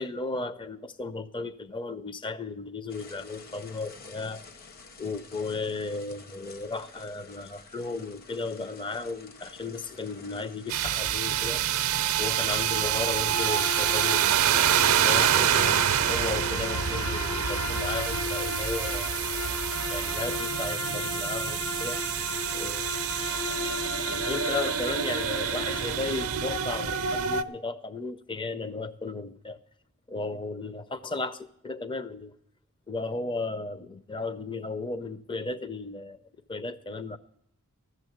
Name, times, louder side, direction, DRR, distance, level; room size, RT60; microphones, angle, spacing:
voice 1, 0.0-4.4 5.0-11.6 12.2-14.7 15.0-19.1 19.7-22.0 22.5-22.8 24.1-29.6 30.1-32.3 32.9-36.2 36.5-37.2, left 3 dB, 20° left, 12 dB, 0.5 m, -35 dB
sound 1, 2.9-17.1 18.5-19.6, left 4 dB, 45° left, 0.8 m, -49 dB
sound 2, 10.7-27.4, right 9 dB, 65° right, 0.6 m, -27 dB
Bowed string instrument, 13.3-26.1, left 3 dB, 70° left, 1.3 m, -35 dB
14.5 x 7.0 x 7.8 m, 0.73 s
head